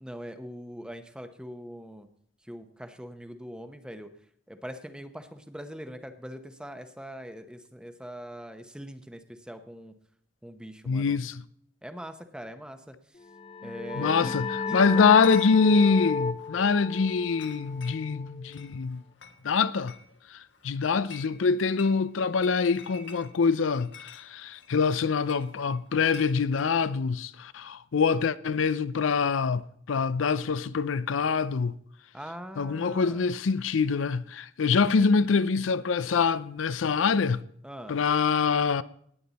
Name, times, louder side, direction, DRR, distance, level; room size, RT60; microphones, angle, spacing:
voice 1, 0.0-2.1 2.4-4.1 4.5-9.9 10.4-11.2 11.8-12.9 13.6-15.1 32.1-33.2 37.6-38.0, equal, 5° right, 0.9 m, -42 dB
voice 2, 10.9-11.4 14.0-19.0 19.4-19.9 20.3-31.7 32.6-37.4 37.9-38.8, left 5 dB, 80° left, 0.5 m, -25 dB
sound 1, 13.3-18.7, left 4 dB, 30° left, 0.4 m, -33 dB
Chatter / Chink clink, 15.0-26.7, left 7 dB, 65° left, 1.4 m, -51 dB
18.5 x 8.7 x 4.1 m
head